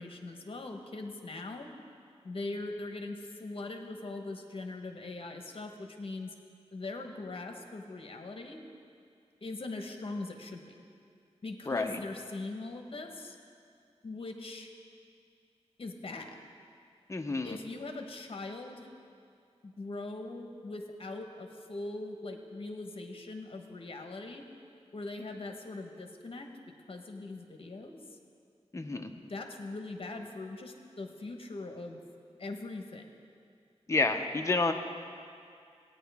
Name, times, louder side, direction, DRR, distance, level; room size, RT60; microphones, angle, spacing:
voice 1, 0.0-1.7 2.2-6.3 6.7-8.6 9.4-10.6 11.4-13.4 14.0-14.7 15.8-16.4 17.4-18.9 19.6-24.4 24.9-26.5 26.9-28.0 29.3-32.0 32.4-33.0, left 2 dB, 55° left, 4 dB, 1.0 m, -41 dB
voice 2, 11.7-12.0 17.1-17.6 28.7-29.1 33.9-34.7, left 3 dB, 25° left, 5 dB, 0.7 m, -29 dB
15.5 x 9.4 x 3.5 m, 2.3 s
wide cardioid pair, 90°, 11 cm